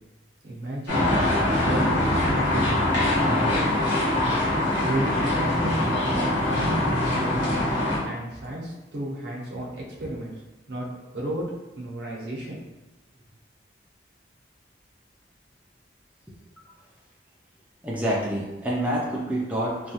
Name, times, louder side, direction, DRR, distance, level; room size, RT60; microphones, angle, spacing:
voice 1, 0.4-1.1 1.6-2.7 3.1-3.7 4.8-7.5 8.0-10.3 10.7-10.9 11.1-11.5 11.8-12.6, right 1 dB, 65° right, -5 dB, 0.7 m, -32 dB
sound 1, 0.9-8.0, left 1 dB, 90° left, 1.2 m, -23 dB
voice 2, 17.8-19.9, right 1 dB, 10° right, -5 dB, 0.3 m, -27 dB
3.0 x 2.2 x 2.8 m, 1.1 s
head